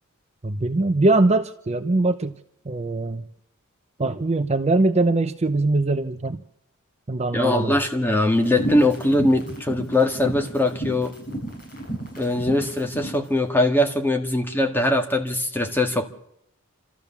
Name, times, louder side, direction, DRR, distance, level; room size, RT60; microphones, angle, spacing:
voice 1, 0.4-2.3 2.7-3.2 4.0-6.4 7.1-7.8, right 2 dB, 30° right, 0.7 m, -22 dB
voice 2, 7.3-11.1 12.2-16.0, left 1 dB, 10° left, 1.8 m, -21 dB
sound 1, 8.4-13.2, right 2 dB, 40° left, 7.9 m, -32 dB
28.0 x 13.5 x 7.0 m
head